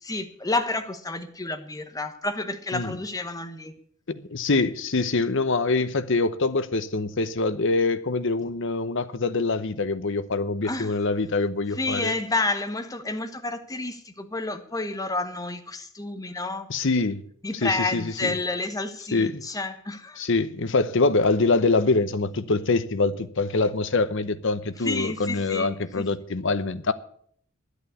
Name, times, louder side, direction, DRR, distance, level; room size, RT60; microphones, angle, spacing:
voice 1, 0.0-3.7 10.6-10.9 11.7-16.7 17.4-20.3 24.8-26.0, left 2 dB, 15° left, 1.2 m, -30 dB
voice 2, 4.1-12.1 16.7-17.2 17.6-18.4 19.1-19.4 20.2-26.9, left 3 dB, 60° left, 0.9 m, -24 dB
11.5 x 8.3 x 8.4 m
head